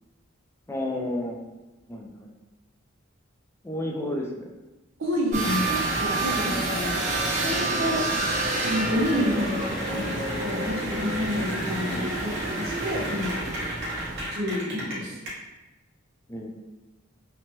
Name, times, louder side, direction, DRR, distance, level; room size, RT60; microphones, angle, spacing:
voice 1, 0.7-1.4 1.9-2.3 3.6-4.5 6.5-6.7 8.1-8.3 11.9-12.1 16.3-16.5, left 1 dB, 10° left, 0 dB, 0.4 m, -32 dB
voice 2, 5.0-7.0 7.4-13.4 14.3-15.2, left 1 dB, 75° right, -3 dB, 0.8 m, -29 dB
sound 1, 5.3-14.3, right 3 dB, 35° right, 0.5 m, -30 dB
Cheering / Applause, 5.3-15.3, equal, 55° right, 1.0 m, -33 dB
3.0 x 2.2 x 2.9 m, 1.1 s
head